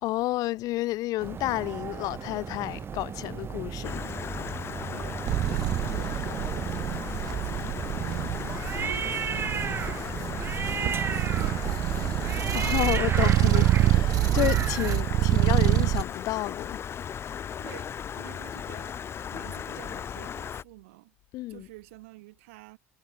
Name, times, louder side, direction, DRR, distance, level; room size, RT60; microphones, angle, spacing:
voice 1, 0.0-4.0 12.5-16.8 21.3-21.7, left 18 dB, 50° left, 1.8 m, -30 dB
sound 1, 1.2-15.0, right 7 dB, 30° right, 3.4 m, -35 dB
Stream, 3.8-20.6, left 8 dB, 35° left, 1.1 m, -36 dB
voice 2, 4.9-6.2 6.9-8.4 8.8-10.2 10.8-12.2 17.6-19.0 19.3-21.1 21.5-22.8, right 22 dB, 65° right, 7.9 m, -49 dB
sound 2, 5.3-16.0, right 15 dB, 50° right, 1.3 m, -26 dB
figure-of-eight pair, 75°, 8 cm